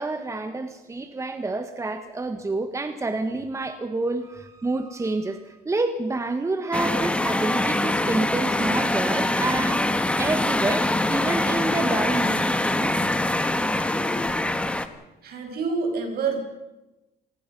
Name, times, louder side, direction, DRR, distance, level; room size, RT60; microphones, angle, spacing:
voice 1, 0.0-13.0, right 2 dB, 15° right, 8 dB, 1.5 m, -28 dB
sound 1, 6.7-14.9, left 1 dB, 5° left, 1.4 m, -24 dB
voice 2, 15.2-16.4, right 4 dB, 65° right, 4 dB, 6.2 m, -27 dB
27.0 x 19.0 x 5.5 m, 1.0 s
cardioid pair, 110°, 17 cm